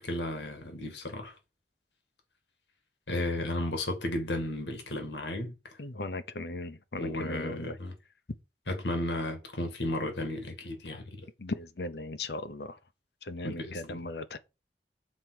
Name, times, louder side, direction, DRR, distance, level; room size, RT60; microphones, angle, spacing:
voice 1, 0.0-1.4 3.1-5.8 7.0-7.9 8.7-11.3 13.4-14.0, left 1 dB, 90° left, 2.2 m, -34 dB
voice 2, 5.8-7.8 11.4-12.8 13.2-14.4, left 2 dB, 70° left, 0.8 m, -37 dB
7.5 x 4.5 x 6.3 m
head